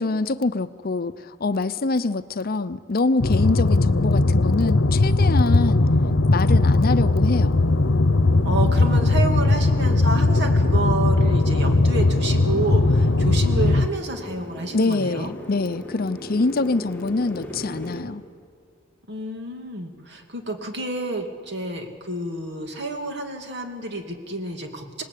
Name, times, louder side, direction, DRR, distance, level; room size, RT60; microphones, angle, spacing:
voice 1, 0.0-5.8 6.3-7.6 14.7-18.2, left 3 dB, 50° left, 13 dB, 0.7 m, -25 dB
sound 1, 3.2-13.9, left 2 dB, 75° left, 0.9 m, -19 dB
Motorcycle, 5.4-18.0, left 1 dB, 10° left, 2.4 m, -41 dB
voice 2, 8.4-15.3 19.1-25.0, right 2 dB, 60° right, 4 dB, 2.5 m, -29 dB
27.0 x 19.5 x 8.4 m, 2.1 s
head